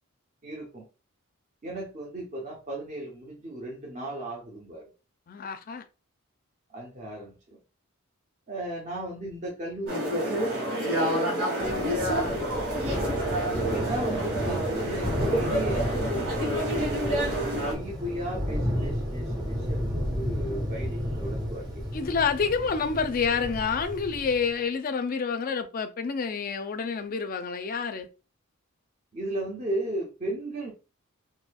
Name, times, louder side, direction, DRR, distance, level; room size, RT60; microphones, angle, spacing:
voice 1, 0.4-0.9 1.6-4.8 6.7-7.6 8.5-11.2 13.4-17.3 17.7-21.8 29.1-30.7, right 1 dB, 35° right, 0.7 m, -36 dB
voice 2, 5.3-5.8 11.6-12.3 21.9-28.1, left 5 dB, 40° left, 0.4 m, -29 dB
sound 1, 9.9-17.7, right 1 dB, 80° right, 1.6 m, -28 dB
Thunder / Rain, 11.6-24.5, equal, 20° right, 1.1 m, -32 dB
4.1 x 2.6 x 2.3 m
head